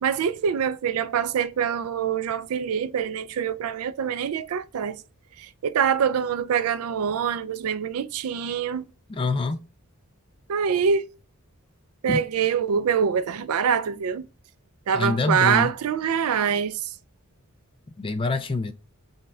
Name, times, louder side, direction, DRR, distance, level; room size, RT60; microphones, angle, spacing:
voice 1, 0.0-5.0 5.4-8.8 10.5-11.1 12.0-14.3 14.9-16.9, right 7 dB, 75° right, 0.4 m, -25 dB
voice 2, 9.1-9.6 12.1-12.2 14.9-15.7 18.0-18.7, left 3 dB, 25° left, 0.3 m, -25 dB
5.3 x 2.3 x 4.2 m
head